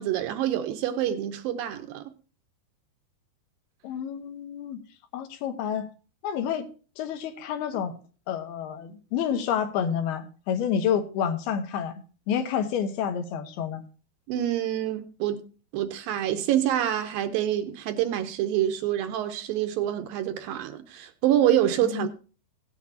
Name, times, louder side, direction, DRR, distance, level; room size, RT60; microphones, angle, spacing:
voice 1, 0.0-2.1 14.3-15.4 15.7-22.1, right 11 dB, 75° right, 2.3 m, -26 dB
voice 2, 3.8-4.8 5.1-5.9 6.2-6.7 7.0-7.9 8.3-11.9 12.3-13.8 21.9-22.1, left 8 dB, 80° left, 3.1 m, -29 dB
17.0 x 8.2 x 2.7 m
omnidirectional pair, 4.5 m